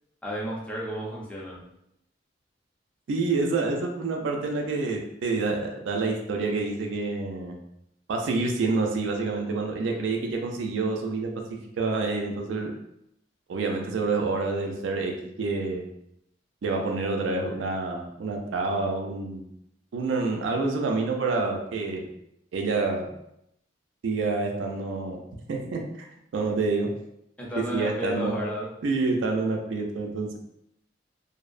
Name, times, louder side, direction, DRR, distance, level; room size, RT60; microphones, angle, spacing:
voice 1, 0.2-1.6 27.4-28.7, equal, 5° left, -5 dB, 0.5 m, -32 dB
voice 2, 3.1-7.6 8.1-11.3 11.8-12.7 13.5-15.9 16.6-19.5 19.9-22.1 22.5-23.1 24.0-25.2 25.5-26.1 26.3-26.9 27.6-28.4 28.8-30.4, right 3 dB, 90° right, 1 dB, 0.4 m, -27 dB
2.5 x 2.0 x 2.4 m, 0.79 s
head